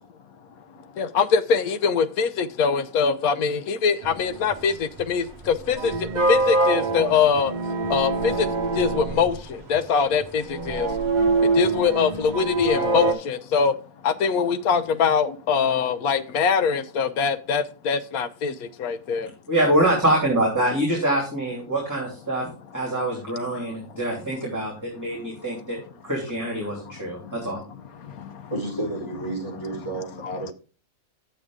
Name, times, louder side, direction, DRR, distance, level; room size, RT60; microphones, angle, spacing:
voice 1, 0.9-7.5 7.9-8.5 8.7-11.0 11.4-13.8 14.0-19.3 23.5-24.0 25.1-25.2 25.7-25.8 26.6-27.4 27.9-28.5 30.2-30.3, left 6 dB, 75° left, 1.2 m, -23 dB
sound 1, 4.0-13.1, right 3 dB, 35° right, 1.0 m, -25 dB
voice 2, 19.5-27.6, right 1 dB, 10° right, 2.9 m, -25 dB
voice 3, 28.5-30.5, right 2 dB, 15° left, 4.5 m, -31 dB
8.9 x 7.9 x 3.6 m
omnidirectional pair, 1.6 m